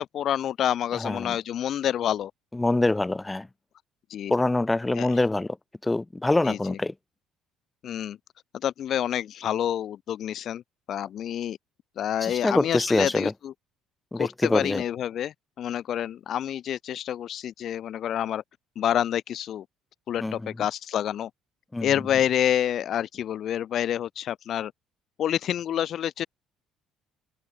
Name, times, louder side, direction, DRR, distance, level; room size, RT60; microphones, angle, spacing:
voice 1, 0.0-2.3 4.1-4.3 5.0-5.1 6.5-6.8 7.8-8.2 8.5-10.6 10.9-11.6 12.0-13.5 14.2-18.4 18.8-19.7 20.1-21.3 21.8-24.7 25.2-26.3, left 10 dB, 60° left, 6.9 m, -28 dB
voice 2, 0.9-1.4 2.5-3.5 4.3-5.6 5.8-6.9 12.2-13.3 14.1-14.8 20.2-20.5 21.7-21.9, left 2 dB, 15° left, 3.7 m, -25 dB
open air
supercardioid pair, 75°, 0 cm